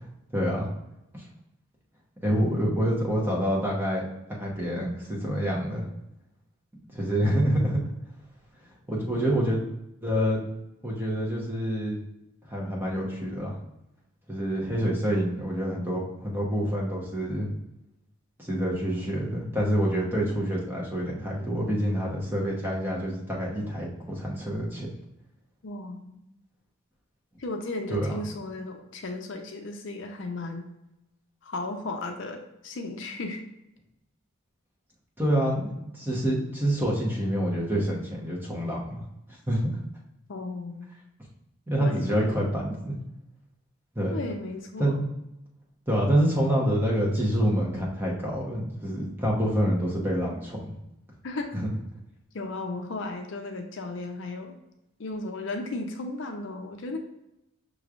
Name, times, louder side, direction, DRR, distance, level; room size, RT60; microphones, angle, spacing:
voice 1, 0.3-0.7 2.2-4.0 4.3-5.9 6.9-7.8 8.9-9.6 10.0-10.4 10.8-12.0 12.5-13.5 14.3-17.5 18.4-24.9 27.9-28.2 35.2-39.0 39.5-39.7 41.7-43.0 43.9-44.2 44.8-45.0 45.9-50.7 51.5-51.7, equal, 10° right, -3 dB, 0.9 m, -27 dB
voice 2, 25.6-26.2 27.4-30.7 31.4-33.4 40.3-40.9 41.8-42.2 44.1-45.0 51.2-51.6 52.3-54.5 55.0-57.0, left 2 dB, 60° left, 4 dB, 0.5 m, -35 dB
6.0 x 3.1 x 2.4 m, 0.87 s
head